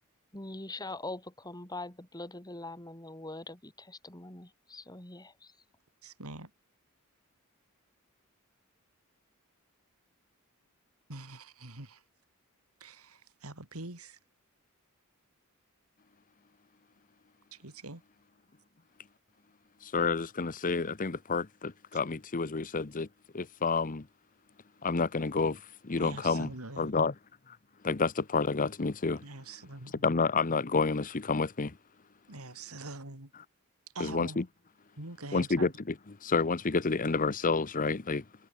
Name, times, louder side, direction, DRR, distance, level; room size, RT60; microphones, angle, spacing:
voice 1, 0.3-5.5, left 2 dB, 20° left, 4.1 m, -43 dB
voice 2, 6.0-6.5 11.1-12.0 12.8-14.2 17.5-18.0 26.0-26.9 29.2-30.1 32.3-33.3 33.9-34.4 35.0-35.7, right 2 dB, 85° right, 3.8 m, -44 dB
voice 3, 19.8-23.1 23.3-24.0 24.8-26.5 26.8-27.1 27.5-27.6 27.8-29.2 30.0-31.7 34.0-34.4 35.3-35.7 36.2-38.2, left 4 dB, 40° left, 0.8 m, -29 dB
head